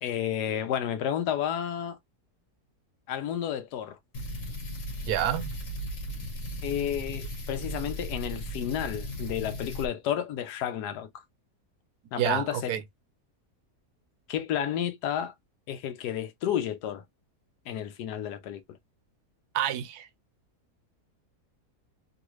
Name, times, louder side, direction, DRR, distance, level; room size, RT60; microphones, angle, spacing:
voice 1, 0.0-2.0 3.1-4.0 6.6-11.1 12.1-12.7 14.3-15.3 15.7-17.0 17.7-18.6, left 10 dB, 85° left, 1.2 m, -31 dB
sound 1, 4.1-9.9, equal, 55° left, 1.3 m, -36 dB
voice 2, 5.1-5.5 12.2-12.8 19.5-20.1, right 11 dB, 80° right, 1.1 m, -28 dB
3.0 x 2.5 x 3.1 m
omnidirectional pair, 1.7 m